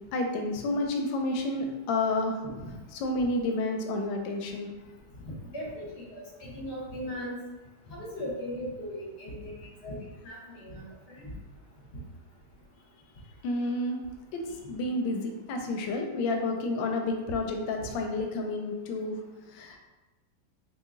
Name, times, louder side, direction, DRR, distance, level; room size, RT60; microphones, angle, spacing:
voice 1, 0.1-2.4 2.9-4.7 13.4-14.0 14.3-19.2 19.5-19.8, left 2 dB, 90° left, 3 dB, 1.3 m, -30 dB
voice 2, 2.4-2.8 5.5-7.4 7.9-9.5 9.8-10.0 10.2-11.3, equal, 40° left, -5 dB, 1.0 m, -38 dB
2.9 x 2.7 x 3.6 m, 1.1 s
omnidirectional pair, 2.0 m